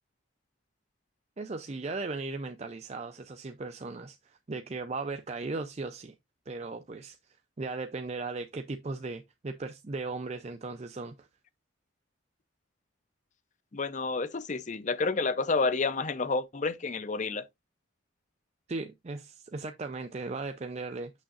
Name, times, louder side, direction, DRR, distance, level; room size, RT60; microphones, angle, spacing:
voice 1, 1.4-6.1 6.5-11.3 18.7-21.1, right 3 dB, 30° right, 0.4 m, -37 dB
voice 2, 13.7-17.4, left 4 dB, 35° left, 0.5 m, -29 dB
6.7 x 6.3 x 2.5 m
head